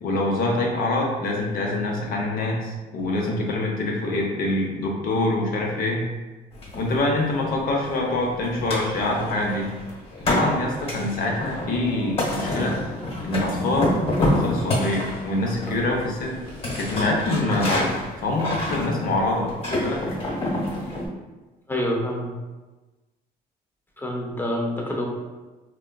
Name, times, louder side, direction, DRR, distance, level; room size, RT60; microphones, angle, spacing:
voice 1, 0.0-6.1 6.7-9.7 10.2-12.8 13.2-16.4 16.8-20.3, left 2 dB, 60° left, -1 dB, 0.7 m, -25 dB
sound 1, 6.5-21.1, left 1 dB, 35° left, 1.2 m, -28 dB
voice 2, 21.7-22.3 24.0-25.1, left 1 dB, 10° left, -1 dB, 0.5 m, -27 dB
3.4 x 2.2 x 2.2 m, 1.2 s
cardioid pair, 110°, 17 cm